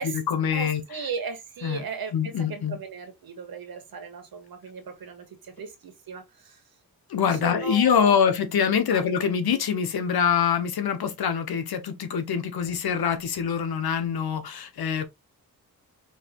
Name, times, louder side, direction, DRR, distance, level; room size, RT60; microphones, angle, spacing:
voice 1, 0.0-0.8 1.6-1.8 2.1-2.8 7.1-15.1, left 7 dB, 90° left, 1.1 m, -24 dB
voice 2, 0.5-6.6 7.3-8.6 8.9-9.0, right 5 dB, 75° right, 1.6 m, -37 dB
5.5 x 3.2 x 3.0 m
wide cardioid pair, 110°, 36 cm